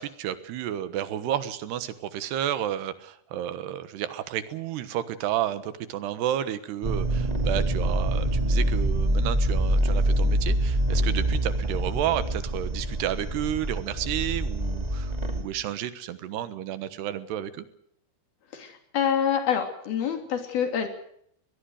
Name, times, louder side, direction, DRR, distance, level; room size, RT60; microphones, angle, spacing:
voice 1, 0.0-17.7, right 11 dB, 90° right, 13 dB, 3.5 m, -31 dB
sound 1, 6.8-15.4, right 1 dB, 15° right, 1.7 m, -25 dB
voice 2, 18.5-20.9, left 8 dB, 70° left, 6 dB, 4.9 m, -26 dB
22.0 x 20.0 x 6.6 m, 0.68 s
omnidirectional pair, 4.6 m